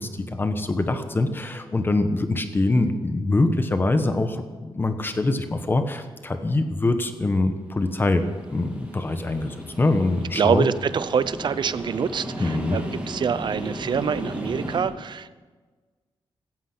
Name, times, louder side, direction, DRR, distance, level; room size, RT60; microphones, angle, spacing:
voice 1, 0.0-10.7 12.4-12.8, left 2 dB, 25° left, 8 dB, 1.2 m, -24 dB
sound 1, 7.8-14.8, right 1 dB, 15° right, 3.3 m, -35 dB
voice 2, 10.4-15.4, right 7 dB, 55° right, 15 dB, 0.7 m, -25 dB
16.5 x 13.5 x 6.1 m, 1.3 s
wide cardioid pair, 165°, 9 cm